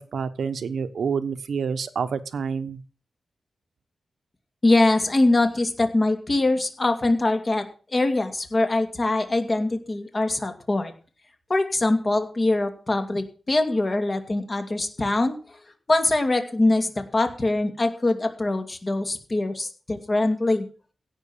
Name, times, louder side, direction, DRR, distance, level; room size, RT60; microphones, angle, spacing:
voice 1, 0.0-2.8, right 6 dB, 80° right, 12 dB, 1.1 m, -28 dB
voice 2, 4.6-7.7 7.9-10.9 11.5-15.6 15.9-20.6, left 2 dB, 30° left, 6 dB, 2.4 m, -23 dB
16.5 x 6.3 x 7.3 m, 0.40 s
wide cardioid pair, 100°, 0 cm